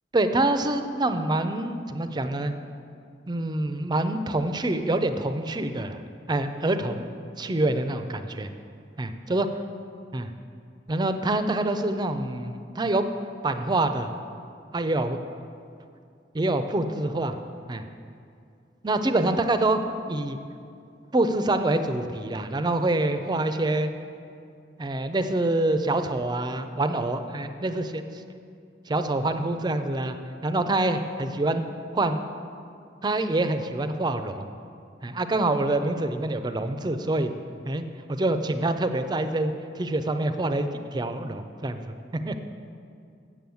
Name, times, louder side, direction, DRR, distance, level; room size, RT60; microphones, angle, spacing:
voice 1, 0.1-2.5 3.3-6.0 6.3-7.1 7.4-8.5 9.0-9.5 10.1-10.3 10.9-13.1 13.4-14.1 14.7-15.2 16.3-17.4 17.7-17.8 18.8-19.8 20.1-20.4 21.1-23.9 24.8-28.0 28.9-30.2 30.4-31.6 31.9-32.2 33.0-34.5 35.0-37.3 37.7-42.4, right 2 dB, 25° right, 9 dB, 0.5 m, -26 dB
7.8 x 7.5 x 7.0 m, 2.4 s
head